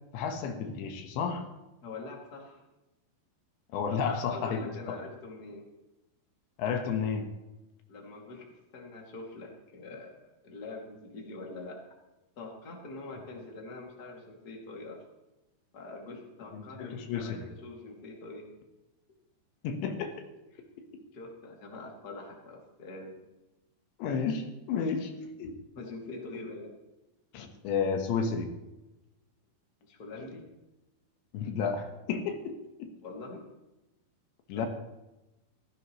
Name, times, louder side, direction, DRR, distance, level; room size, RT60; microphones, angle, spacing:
voice 1, 0.1-1.4 3.7-5.0 6.6-7.3 16.5-17.5 19.6-20.2 24.0-25.1 25.4-25.5 27.3-28.5 31.3-32.9 34.5-34.7, left 6 dB, 80° left, 5 dB, 3.5 m, -32 dB
voice 2, 1.8-2.6 3.9-5.7 7.9-8.5 8.7-11.8 12.4-15.0 15.7-18.5 21.1-23.2 25.7-26.7 29.8-30.4 33.0-33.4 34.5-34.6, left 3 dB, 30° left, -1 dB, 2.3 m, -44 dB
16.0 x 16.0 x 3.2 m, 0.99 s
omnidirectional pair, 5.1 m